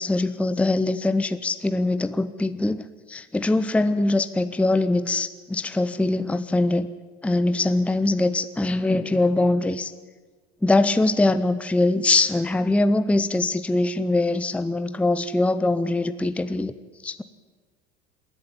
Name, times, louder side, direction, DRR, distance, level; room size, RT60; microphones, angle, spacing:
voice 1, 0.0-6.9 7.2-9.9 10.6-16.7 17.0-17.2, left 2 dB, 5° left, 12 dB, 0.7 m, -22 dB
27.0 x 11.0 x 9.1 m, 1.4 s
hypercardioid pair, 75°, 34 cm